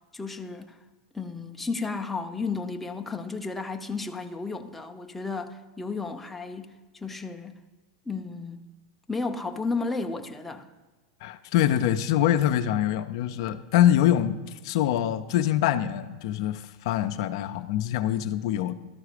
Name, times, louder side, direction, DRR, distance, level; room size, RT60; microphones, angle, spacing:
voice 1, 0.1-0.8 1.1-7.6 8.1-8.6 9.1-10.7, left 4 dB, 5° left, 4 dB, 0.6 m, -33 dB
voice 2, 11.2-18.7, left 11 dB, 65° left, 10 dB, 0.5 m, -24 dB
12.0 x 4.7 x 5.0 m, 1.3 s
hypercardioid pair, 125°, 3 cm